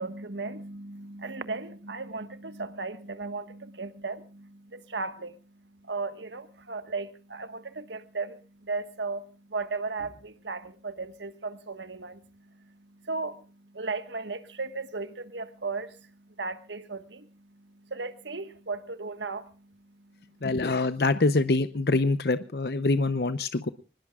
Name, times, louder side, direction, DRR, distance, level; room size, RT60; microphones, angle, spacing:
voice 1, 0.0-5.4 5.8-16.1 16.4-20.3, right 3 dB, 90° right, 10 dB, 1.5 m, -36 dB
voice 2, 20.4-23.7, left 3 dB, 60° left, 12 dB, 0.8 m, -25 dB
24.5 x 20.5 x 2.4 m, 0.36 s
head